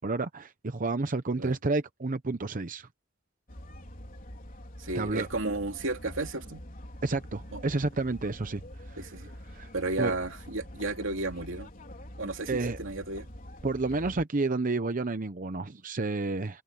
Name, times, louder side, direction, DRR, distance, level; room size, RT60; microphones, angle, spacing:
voice 1, 0.0-2.9 4.9-5.3 7.0-9.0 9.5-9.7 10.0-10.2 12.5-12.8 13.6-16.6, right 3 dB, 45° right, 0.8 m, -30 dB
sound 1, 3.5-14.2, equal, 45° left, 4.1 m, -45 dB
voice 2, 4.8-6.6 7.5-7.6 9.0-9.3 9.7-11.7 12.2-13.3, right 2 dB, 85° right, 2.7 m, -33 dB
head